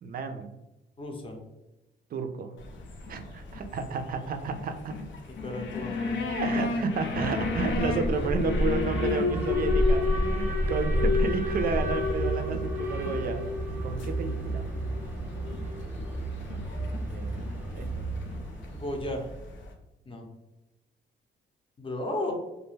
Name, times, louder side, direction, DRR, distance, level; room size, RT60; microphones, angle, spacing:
voice 1, 0.0-0.5 2.1-2.5 3.1-4.9 6.3-13.4 13.8-14.6 17.1-18.1, right 4 dB, 50° right, 7 dB, 0.4 m, -32 dB
voice 2, 1.0-1.4 5.4-6.3 18.8-19.2 20.1-20.3 21.8-22.3, left 1 dB, 25° left, 2 dB, 0.7 m, -34 dB
sound 1, 2.6-19.7, left 3 dB, 70° left, 0.5 m, -37 dB
Alarm, 7.1-19.1, left 1 dB, 10° right, 0.8 m, -29 dB
2.4 x 2.2 x 3.1 m, 0.98 s
cardioid pair, 90°, 20 cm